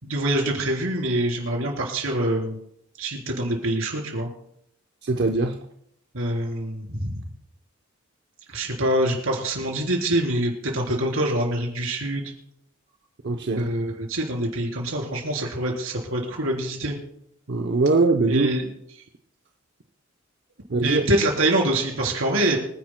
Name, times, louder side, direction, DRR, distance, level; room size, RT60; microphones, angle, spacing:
voice 1, 0.0-2.6 3.0-4.3 6.1-7.2 8.5-12.3 13.6-17.0 18.3-18.6 20.8-22.6, right 1 dB, 85° right, 1 dB, 3.7 m, -25 dB
voice 2, 5.0-5.6 13.2-13.7 17.5-18.5 20.7-21.0, right 3 dB, 55° right, 3 dB, 0.7 m, -21 dB
25.5 x 10.5 x 2.2 m, 0.73 s
head